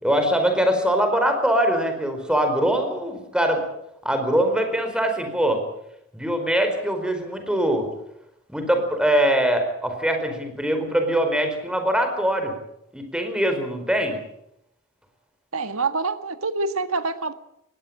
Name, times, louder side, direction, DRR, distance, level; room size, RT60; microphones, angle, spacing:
voice 1, 0.0-3.6 4.0-5.6 6.1-7.9 8.5-12.5 12.9-14.2, right 1 dB, 5° right, 5 dB, 4.7 m, -22 dB
voice 2, 15.5-17.3, right 3 dB, 85° right, 10 dB, 1.6 m, -26 dB
21.0 x 17.0 x 8.8 m, 0.79 s
head